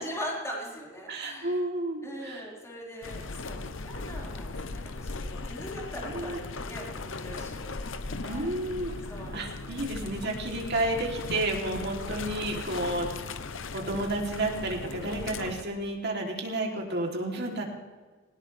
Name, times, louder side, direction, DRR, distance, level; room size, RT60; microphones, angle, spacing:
voice 1, 0.0-1.6 2.0-8.5 9.1-10.6, equal, 15° left, -5 dB, 4.9 m, -41 dB
voice 2, 1.1-2.4 6.1-6.4 8.2-8.9 9.3-13.1 13.7-17.6, right 1 dB, 60° right, 1 dB, 3.2 m, -31 dB
sound 1, 3.0-15.6, left 3 dB, 70° left, 0.9 m, -38 dB
19.0 x 18.0 x 3.4 m, 1.4 s
head